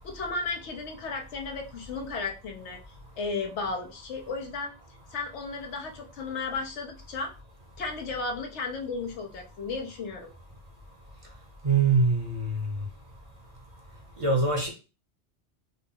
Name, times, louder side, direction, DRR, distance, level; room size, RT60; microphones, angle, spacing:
voice 1, 0.0-2.8 3.2-4.7 5.1-7.3 7.8-10.3, left 4 dB, 90° left, 1 dB, 1.1 m, -34 dB
voice 2, 11.6-12.7 14.2-14.7, right 4 dB, 35° right, 1 dB, 0.7 m, -23 dB
3.8 x 2.0 x 3.7 m, 0.32 s
omnidirectional pair, 1.1 m